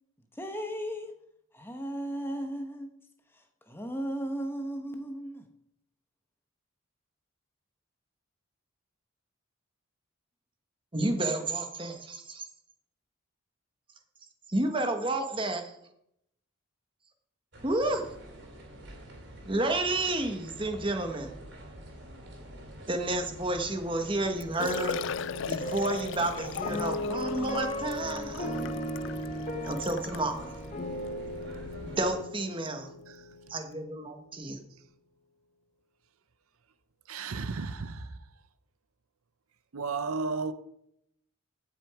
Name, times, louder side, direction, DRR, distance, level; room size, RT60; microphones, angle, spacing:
voice 1, 0.4-1.1 1.5-2.9 3.3-5.4, right 1 dB, 10° left, 1.0 m, -36 dB
voice 2, 10.9-12.5 14.5-15.6 17.6-18.0 19.5-21.4 22.9-25.0 25.5-28.8 29.6-30.6 31.8-32.9 33.5-34.6, right 2 dB, 25° right, 1.3 m, -31 dB
sound 1, 17.5-32.2, equal, 55° right, 3.4 m, -46 dB
Liquid, 24.0-24.1 24.4-30.3 31.0-31.1 31.5-31.6 33.3-33.4 33.5-33.6, left 8 dB, 60° left, 0.3 m, -39 dB
sound 2, 24.6-33.8, left 1 dB, 30° left, 1.1 m, -36 dB
voice 3, 37.1-38.1 39.7-40.5, right 4 dB, 85° right, 0.7 m, -33 dB
15.5 x 6.3 x 4.9 m
head